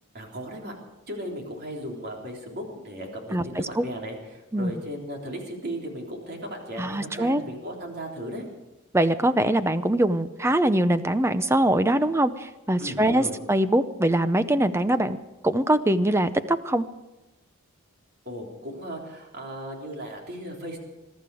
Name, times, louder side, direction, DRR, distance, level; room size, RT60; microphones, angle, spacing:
voice 1, 0.1-0.8 1.1-8.4 12.8-13.3 18.3-20.8, equal, 45° right, 0 dB, 3.6 m, -36 dB
voice 2, 3.3-3.8 4.5-4.7 6.8-7.4 8.9-15.2 15.4-16.8, right 1 dB, 10° right, 12 dB, 0.6 m, -23 dB
22.0 x 12.5 x 4.9 m, 0.99 s
head